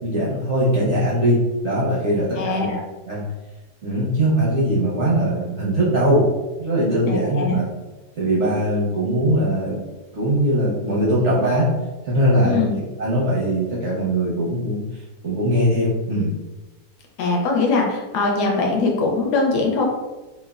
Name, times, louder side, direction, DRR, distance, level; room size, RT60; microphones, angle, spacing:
voice 1, 0.0-2.7 3.1-3.2 3.8-6.3 6.6-7.7 8.2-9.8 10.1-11.7 12.1-12.7 13.0-14.8 15.2-16.3, right 1 dB, 65° right, -6 dB, 0.7 m, -20 dB
voice 2, 2.4-2.8 7.1-7.6 12.4-12.8 17.2-19.8, left 3 dB, 75° left, 0 dB, 1.1 m, -21 dB
3.2 x 2.1 x 2.3 m, 1.1 s
omnidirectional pair, 1.9 m